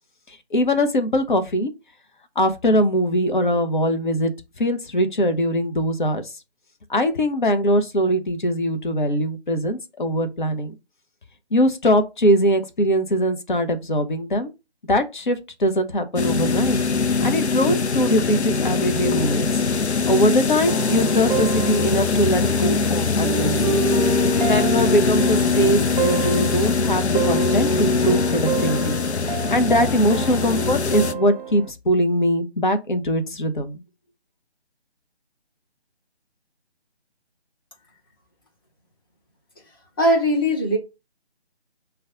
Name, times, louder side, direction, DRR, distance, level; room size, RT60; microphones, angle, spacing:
voice 1, 0.3-1.7 2.4-4.3 4.6-6.3 6.9-10.7 11.5-14.5 14.9-19.5 20.1-23.8 24.1-29.0 29.5-33.8, equal, 50° left, 0.8 m, -22 dB
sound 1, 16.2-31.1, left 4 dB, 80° left, 0.6 m, -22 dB
sound 2, 20.7-31.7, right 5 dB, 50° right, 0.5 m, -29 dB
voice 2, 40.0-40.8, equal, 20° left, 0.9 m, -19 dB
4.9 x 2.3 x 3.6 m
figure-of-eight pair, 155°, 33 cm